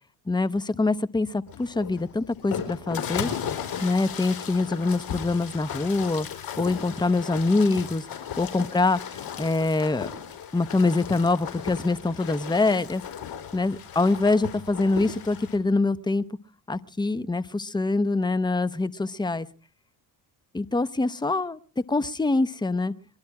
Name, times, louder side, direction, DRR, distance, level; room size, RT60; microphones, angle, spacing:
voice 1, 0.3-3.3 3.8-6.3 6.6-10.1 10.5-13.0 13.5-16.2 16.7-19.5 20.5-21.6 21.9-22.9, left 3 dB, 10° left, 14 dB, 0.8 m, -24 dB
sound 1, 1.5-15.6, left 8 dB, 55° left, 4.5 m, -36 dB
23.0 x 12.0 x 4.8 m, 0.42 s
supercardioid pair, 80°, 43 cm